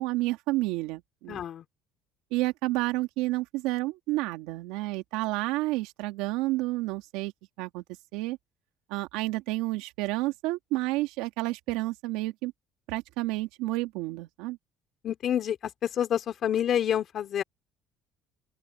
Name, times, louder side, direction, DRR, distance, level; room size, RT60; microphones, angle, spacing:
voice 1, 0.0-1.4 2.3-7.3 7.6-7.8 8.1-8.4 8.9-12.5 12.9-14.6, right 19 dB, 90° right, 2.5 m, -30 dB
voice 2, 1.3-1.6 15.0-17.4, left 10 dB, 50° left, 3.5 m, -28 dB
open air
cardioid pair, 115°, 0 cm